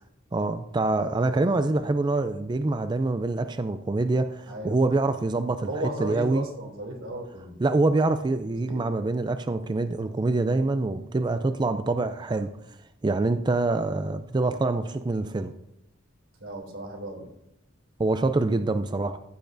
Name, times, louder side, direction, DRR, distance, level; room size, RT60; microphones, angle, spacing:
voice 1, 0.3-5.7 6.0-6.4 7.6-12.5 13.0-15.5 18.0-19.2, right 2 dB, 20° right, 0.4 m, -25 dB
voice 2, 1.0-1.6 4.5-4.8 5.7-7.6 8.4-8.8 16.4-17.3, right 1 dB, 90° right, 2.9 m, -35 dB
15.0 x 9.0 x 2.6 m
head